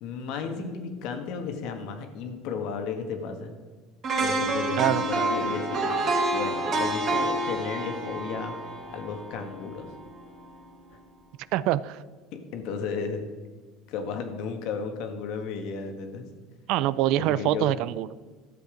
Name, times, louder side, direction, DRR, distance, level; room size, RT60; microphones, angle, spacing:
voice 1, 0.0-3.5 4.2-6.0 6.3-8.6 8.9-9.9 12.3-13.3 13.9-16.3 17.2-17.7, left 5 dB, 60° left, 6 dB, 1.5 m, -34 dB
sound 1, 4.0-10.1 10.4-10.6, right 2 dB, 35° right, 1.9 m, -28 dB
voice 2, 11.5-12.0 16.7-18.1, right 14 dB, 60° right, 18 dB, 0.3 m, -25 dB
12.0 x 7.9 x 5.1 m, 1.4 s
cardioid pair, 150°, 0 cm